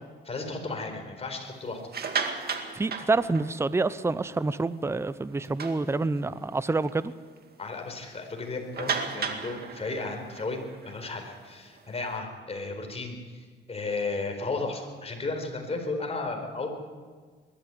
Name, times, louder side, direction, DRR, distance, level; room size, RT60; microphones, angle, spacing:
voice 1, 0.2-1.8 7.6-13.2 13.7-16.7, left 3 dB, 30° left, 4 dB, 4.6 m, -34 dB
sound 1, 1.8-3.9 4.4-4.5 4.9-5.0 5.4-6.4 6.9-7.0 7.4-7.5 8.7-12.1, right 5 dB, 50° right, 2.2 m, -34 dB
voice 2, 2.7-7.1, right 3 dB, 15° right, 16 dB, 0.7 m, -27 dB
21.0 x 13.5 x 9.3 m, 1.5 s
cardioid pair, 90°, 20 cm